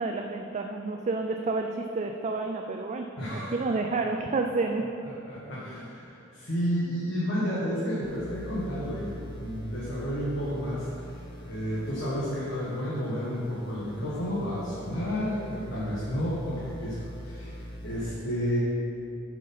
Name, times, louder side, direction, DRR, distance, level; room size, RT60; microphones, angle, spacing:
voice 1, 0.0-3.1 3.3-4.9, right 3 dB, 35° right, 4 dB, 0.3 m, -29 dB
voice 2, 3.2-3.6 5.0-10.9 11.1-11.2 11.5-18.6, equal, 65° left, -8 dB, 1.5 m, -31 dB
sound 1, 8.0-18.0, equal, 25° left, 1.0 m, -44 dB
7.7 x 5.0 x 5.5 m, 2.8 s
head